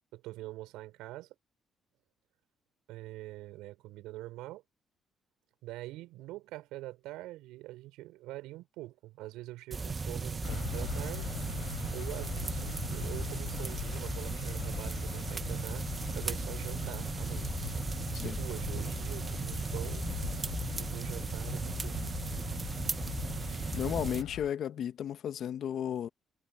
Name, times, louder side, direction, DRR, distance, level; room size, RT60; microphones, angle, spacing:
voice 1, 0.1-1.3 2.9-4.6 5.6-11.3 11.9-15.8 16.1-17.5 18.2-20.0 20.8-22.0, right 17 dB, 85° right, 6.3 m, -44 dB
sound 1, 9.7-24.2, right 4 dB, 35° right, 1.3 m, -36 dB
sound 2, 10.4-24.5, left 19 dB, 90° left, 4.5 m, -41 dB
voice 2, 23.3-26.1, left 9 dB, 65° left, 1.4 m, -35 dB
supercardioid pair, 70°, 0 cm